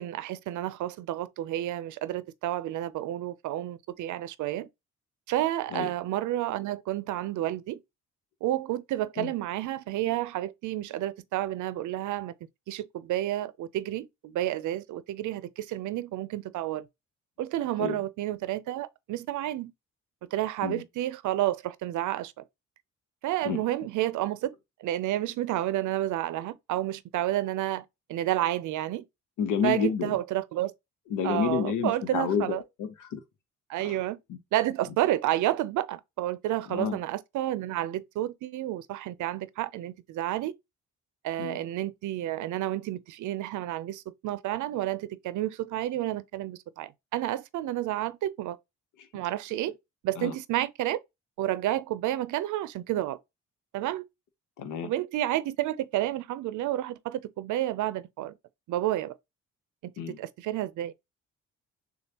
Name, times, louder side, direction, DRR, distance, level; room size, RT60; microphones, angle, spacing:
voice 1, 0.0-4.7 5.3-7.8 8.4-12.3 12.7-16.9 17.4-19.7 20.3-22.4 23.2-24.5 24.8-27.8 28.1-29.0 29.6-30.7 31.2-32.6 33.7-34.2 34.5-40.5 41.2-48.6 49.1-49.7 50.0-51.0 51.4-53.2 53.7-54.1 54.8-58.3 58.7-59.1 59.8-60.9, right 14 dB, 75° right, 0.5 m, -30 dB
voice 2, 29.4-30.1 31.1-33.2 33.8-34.0 34.3-34.4 36.7-37.0 41.4-41.6 50.2-50.3 54.6-54.9 60.0-60.2, left 7 dB, 85° left, 0.9 m, -30 dB
6.7 x 2.4 x 2.8 m
cardioid pair, 90°, 30 cm